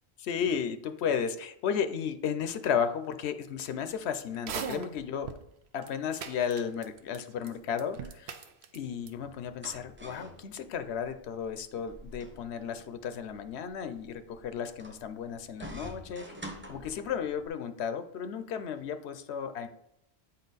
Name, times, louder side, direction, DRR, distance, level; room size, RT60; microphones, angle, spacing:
voice 1, 0.2-5.4 5.7-8.4 8.7-16.4 16.7-19.7, left 7 dB, 85° left, 10 dB, 0.9 m, -34 dB
sound 1, 4.3-5.4 5.8-5.9 6.2-7.2 7.4-7.5 7.8-8.8 9.1-9.2, right 7 dB, 80° right, 0.9 m, -38 dB
sound 2, 9.0-17.5, equal, 10° right, 0.7 m, -48 dB
8.9 x 4.3 x 4.0 m, 0.79 s
omnidirectional pair, 1.1 m